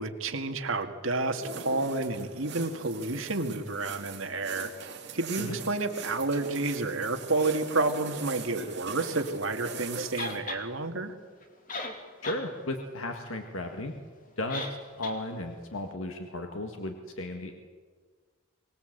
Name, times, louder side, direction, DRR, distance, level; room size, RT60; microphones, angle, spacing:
voice 1, 0.0-4.7 5.1-11.1, right 3 dB, 70° right, 6 dB, 2.0 m, -30 dB
sound 1, 1.3-10.4, right 5 dB, 50° right, 2.9 m, -41 dB
sound 2, 10.2-10.6 11.4-11.5 11.7-12.4 12.8-12.9 14.5-14.8 15.0-15.2, left 2 dB, 40° left, 2.5 m, -36 dB
voice 2, 12.2-13.9 14.4-17.5, left 1 dB, 70° left, 4 dB, 1.8 m, -35 dB
24.0 x 19.0 x 8.0 m, 1.5 s
head